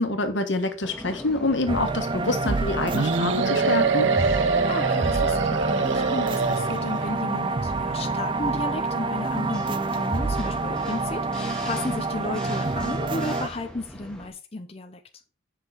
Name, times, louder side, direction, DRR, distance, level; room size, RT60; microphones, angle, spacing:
voice 1, 0.0-4.1, left 2 dB, 80° left, 1.5 m, -26 dB
sound 1, 0.8-14.3, equal, 5° left, 1.6 m, -41 dB
sound 2, 1.7-13.5, right 3 dB, 25° right, 0.4 m, -27 dB
sound 3, 2.9-7.1, right 4 dB, 85° right, 0.7 m, -24 dB
voice 2, 4.7-15.0, left 2 dB, 30° left, 0.7 m, -33 dB
7.6 x 5.7 x 4.9 m
head